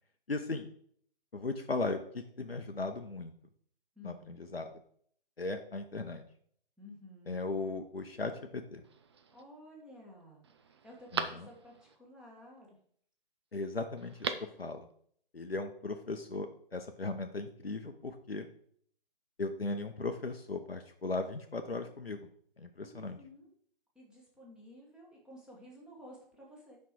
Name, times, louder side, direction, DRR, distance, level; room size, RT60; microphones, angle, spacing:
voice 1, 0.3-0.7 1.3-3.3 4.0-4.7 5.4-6.2 7.3-8.8 11.1-11.5 13.5-14.3 14.6-14.9 15.3-18.5 19.4-22.3 22.6-23.2, left 3 dB, 85° left, 6 dB, 0.9 m, -37 dB
voice 2, 3.9-4.3 6.8-7.4 9.3-12.8 22.8-23.5 23.9-26.8, left 1 dB, 5° right, -3 dB, 1.5 m, -53 dB
Telephone, 8.8-9.4 10.0-10.1 10.4-12.0 14.0-14.6 14.9-15.0, right 6 dB, 30° right, 0.5 m, -39 dB
8.5 x 5.7 x 4.6 m, 0.63 s
figure-of-eight pair, 130°, 29 cm